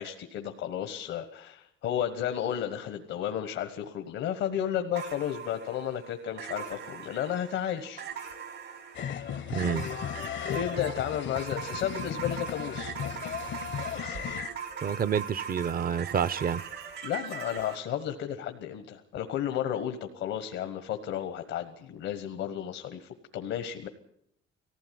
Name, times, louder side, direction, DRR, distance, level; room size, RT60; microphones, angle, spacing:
voice 1, 0.0-8.0 10.4-12.9 17.0-23.9, left 10 dB, 90° left, 1.3 m, -33 dB
sound 1, 4.9-17.8, right 7 dB, 80° right, 4.7 m, -40 dB
sound 2, 8.9-14.5, left 10 dB, 70° left, 0.8 m, -36 dB
voice 2, 9.5-9.8 14.8-16.6, right 7 dB, 45° right, 0.7 m, -28 dB
18.5 x 15.5 x 9.4 m
cardioid pair, 90°, 20 cm